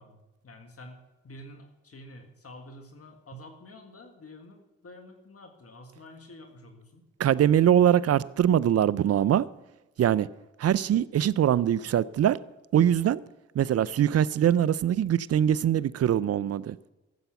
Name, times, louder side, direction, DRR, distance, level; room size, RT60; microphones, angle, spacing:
voice 1, 0.0-7.1, left 1 dB, 50° left, 1.9 m, -49 dB
voice 2, 7.2-9.5 10.0-10.3 10.6-12.4 12.7-13.2 13.5-16.8, right 10 dB, 55° right, 0.5 m, -22 dB
13.5 x 8.0 x 5.9 m
supercardioid pair, 50°, 30 cm